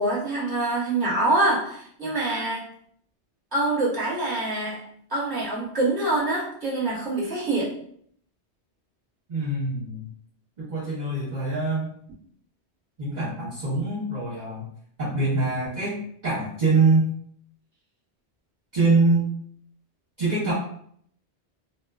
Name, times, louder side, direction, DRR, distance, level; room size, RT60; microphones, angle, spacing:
voice 1, 0.0-2.7 3.5-4.8 5.1-7.7, right 2 dB, 20° right, -7 dB, 1.1 m, -25 dB
voice 2, 9.3-10.1 10.6-11.9 13.0-14.7 15.0-17.1 18.7-19.3 20.2-20.5, right 3 dB, 45° right, -9 dB, 0.8 m, -24 dB
2.6 x 2.3 x 2.3 m, 0.65 s
omnidirectional pair, 1.1 m